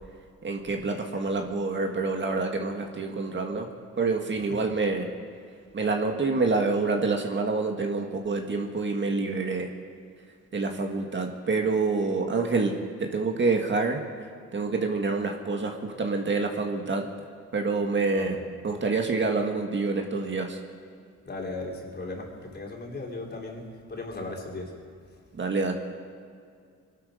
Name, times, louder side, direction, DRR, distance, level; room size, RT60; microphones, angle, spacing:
voice 1, 0.4-3.7 4.0-5.1 5.7-9.7 10.5-14.0 14.5-17.1 17.5-18.4 18.6-20.6 25.3-25.7, right 3 dB, 40° right, 3 dB, 1.8 m, -27 dB
voice 2, 18.1-18.4 21.3-23.6 23.9-24.7, left 2 dB, 35° left, -1 dB, 3.6 m, -37 dB
23.0 x 12.5 x 5.1 m, 2.2 s
cardioid pair, 90°, 30 cm